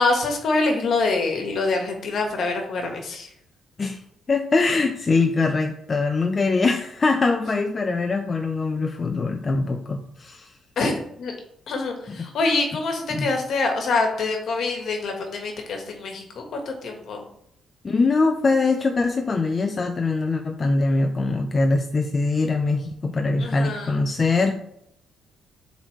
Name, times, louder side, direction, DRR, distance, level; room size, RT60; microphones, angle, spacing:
voice 1, 0.0-3.3 10.8-11.3 11.7-17.3 23.4-24.0, left 3 dB, 65° left, 3 dB, 1.5 m, -25 dB
voice 2, 4.3-10.5 12.1-12.2 13.1-13.3 17.8-24.5, left 3 dB, 35° left, 5 dB, 0.6 m, -22 dB
7.5 x 4.0 x 3.2 m, 0.75 s
cardioid pair, 90°, 0 cm